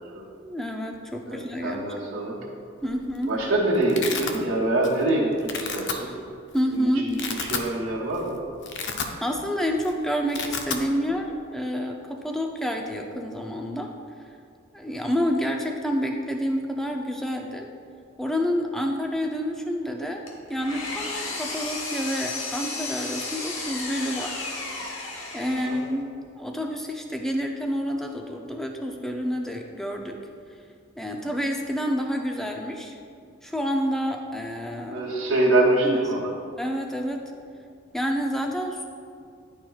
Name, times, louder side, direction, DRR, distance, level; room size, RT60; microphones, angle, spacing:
voice 1, 0.4-1.9 2.8-3.3 6.5-7.1 9.2-13.9 14.7-17.7 18.2-20.2 20.5-24.5 25.3-26.1 26.4-30.2 31.0-33.0 33.4-35.1 35.8-36.1 36.6-37.2 37.9-38.9, equal, ahead, 2 dB, 0.4 m, -28 dB
voice 2, 1.3-2.4 3.3-6.1 6.7-7.2 7.5-8.4 25.5-25.8 34.9-36.3, right 2 dB, 70° right, -10 dB, 1.2 m, -24 dB
Domestic sounds home sounds, 2.9-3.2 3.5-4.4 4.8-5.1 5.4-5.9 6.6-6.7 7.0-7.7 8.1-8.2 8.5-9.5 9.7-9.9 10.2-10.8, left 5 dB, 60° left, 0.5 m, -31 dB
Engine, 20.3-26.0, left 3 dB, 80° left, 1.0 m, -33 dB
10.5 x 4.4 x 2.3 m, 2.3 s
head